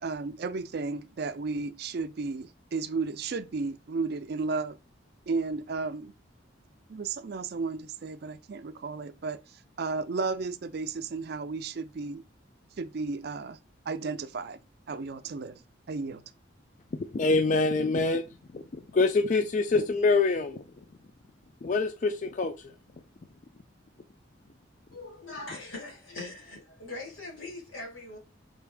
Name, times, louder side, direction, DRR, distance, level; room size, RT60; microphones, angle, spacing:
voice 1, 0.0-4.8 5.3-6.1 6.9-9.4 9.8-12.2 12.8-13.6 13.9-14.6 14.9-15.6 15.9-16.2, right 4 dB, 55° right, 0.4 m, -33 dB
voice 2, 16.9-18.2 18.5-20.6 21.6-22.7, left 3 dB, 40° left, 0.3 m, -25 dB
voice 3, 24.9-28.2, left 2 dB, 90° left, 2.0 m, -41 dB
4.0 x 3.3 x 3.5 m
head